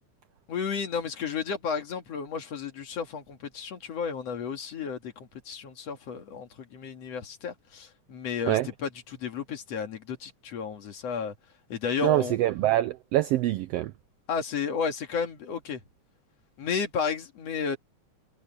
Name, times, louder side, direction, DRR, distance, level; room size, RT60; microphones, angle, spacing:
voice 1, 0.5-11.3 11.7-12.4 14.3-15.8 16.6-17.8, left 6 dB, 60° left, 3.0 m, -33 dB
voice 2, 12.0-13.9, right 14 dB, 85° right, 1.4 m, -25 dB
omnidirectional pair, 3.3 m